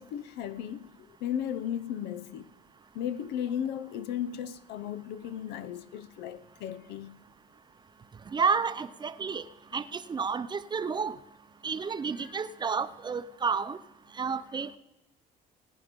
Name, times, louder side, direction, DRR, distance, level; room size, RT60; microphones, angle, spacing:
voice 1, 0.0-2.5 2.9-7.2, left 9 dB, 85° left, 0.8 m, -35 dB
voice 2, 8.3-9.4 9.7-11.2 11.6-13.8 14.1-14.8, right 5 dB, 25° right, 0.6 m, -30 dB
18.5 x 9.2 x 5.3 m
cardioid pair, 110°, 17 cm